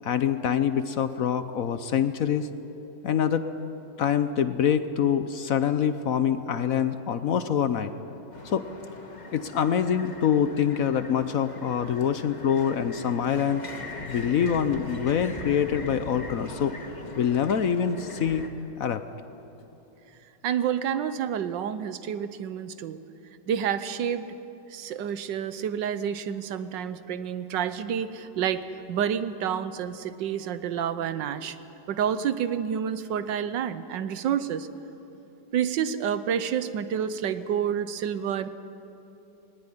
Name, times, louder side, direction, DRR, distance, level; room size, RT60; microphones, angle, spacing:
voice 1, 0.0-2.5 3.0-3.5 4.0-7.9 8.4-8.6 9.3-13.7 14.1-16.7 17.1-18.5 18.8-19.0, left 8 dB, 60° left, 11 dB, 1.0 m, -25 dB
sound 1, 8.3-18.5, left 2 dB, 25° left, 1.4 m, -40 dB
voice 2, 20.4-23.0 23.5-24.4 24.7-31.6 31.9-34.7 35.5-38.5, right 8 dB, 85° right, 12 dB, 1.5 m, -29 dB
19.5 x 18.5 x 10.0 m, 3.0 s
omnidirectional pair, 1.9 m